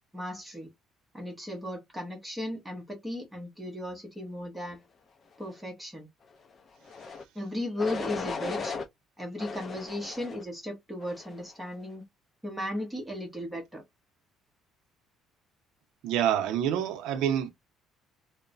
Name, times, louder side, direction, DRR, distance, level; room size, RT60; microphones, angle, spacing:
voice 1, 0.1-0.7 1.1-4.8 5.4-6.1 7.3-8.7 9.2-12.0 12.4-13.8, left 1 dB, 5° right, 0.9 m, -36 dB
sound 1, 6.8-7.2 7.8-8.9 9.4-10.4 11.0-11.4, left 5 dB, 30° left, 0.4 m, -37 dB
voice 2, 16.0-17.5, right 10 dB, 90° right, 0.5 m, -27 dB
3.0 x 2.0 x 2.4 m
cardioid pair, 155°, 0 cm